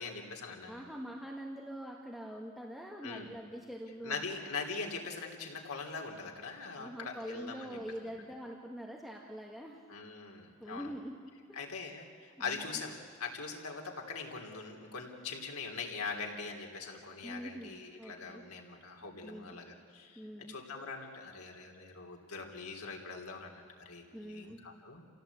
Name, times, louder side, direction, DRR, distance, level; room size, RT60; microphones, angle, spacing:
voice 1, 0.0-0.8 3.0-3.3 4.0-7.8 9.9-10.9 11.5-25.0, left 4 dB, 80° left, 1 dB, 3.4 m, -42 dB
voice 2, 0.7-4.5 6.8-9.8 10.6-11.2 11.5-11.6 12.4-12.8 17.2-18.4 19.2-19.6 20.1-20.6 24.1-24.6, equal, ahead, -1 dB, 1.6 m, -44 dB
28.0 x 17.0 x 8.5 m, 2.3 s
head